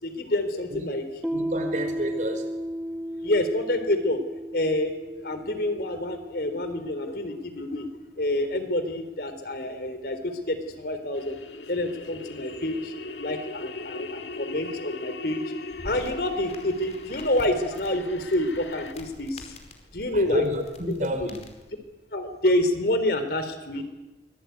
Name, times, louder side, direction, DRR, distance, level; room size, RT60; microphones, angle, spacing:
voice 1, 0.0-1.0 3.2-4.2 4.5-7.9 8.2-11.4 11.7-15.4 15.8-19.5 19.9-20.4 21.0-21.3 22.1-23.8, left 1 dB, 60° left, 9 dB, 3.8 m, -28 dB
Piano, 1.2-8.5, equal, ahead, 1.5 m, -35 dB
voice 2, 1.3-2.5 20.1-21.4, equal, 45° right, 6 dB, 5.1 m, -29 dB
sound 1, 11.1-18.9, left 2 dB, 90° left, 1.9 m, -39 dB
sound 2, 15.7-21.7, left 1 dB, 40° left, 4.8 m, -46 dB
25.0 x 22.0 x 9.6 m, 1.1 s
head